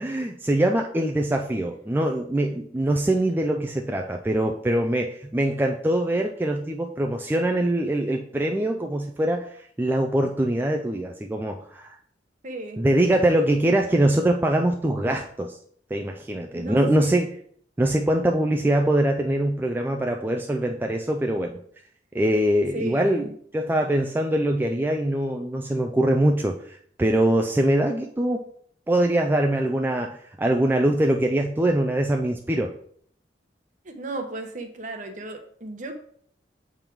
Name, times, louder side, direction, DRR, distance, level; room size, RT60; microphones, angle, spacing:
voice 1, 0.0-12.0 12.8-15.6 15.9-17.4 17.8-21.6 22.1-23.3 23.5-28.4 28.9-32.7, right 1 dB, 10° right, 2 dB, 0.3 m, -23 dB
voice 2, 12.4-12.9 16.5-17.2 22.7-23.3 33.8-36.0, right 2 dB, 45° right, 5 dB, 0.9 m, -35 dB
7.2 x 3.5 x 4.6 m, 0.63 s
head